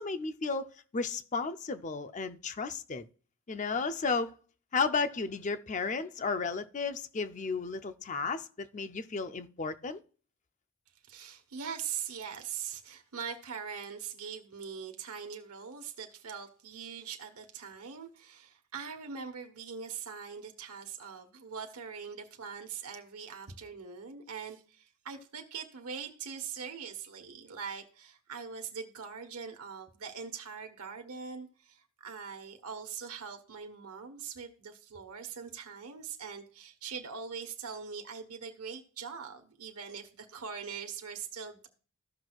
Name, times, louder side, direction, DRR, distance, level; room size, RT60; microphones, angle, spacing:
voice 1, 0.0-3.0 3.5-4.3 4.7-10.0, left 4 dB, 35° left, 0.5 m, -33 dB
voice 2, 11.1-41.7, right 6 dB, 85° right, 1.2 m, -42 dB
15.0 x 6.1 x 2.4 m
head